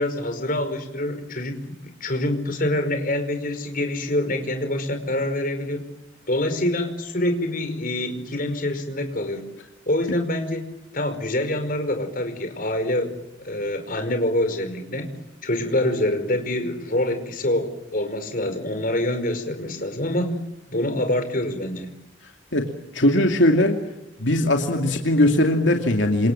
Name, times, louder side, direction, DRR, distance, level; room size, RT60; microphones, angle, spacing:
voice 1, 0.0-5.8 6.3-9.4 9.9-10.7 10.9-13.2 13.4-15.1 15.4-20.3 20.7-21.9, left 1 dB, 45° left, 7 dB, 5.2 m, -25 dB
voice 2, 22.5-23.8 24.2-26.3, left 1 dB, 75° left, 3 dB, 2.7 m, -20 dB
28.5 x 27.0 x 7.5 m, 0.95 s
head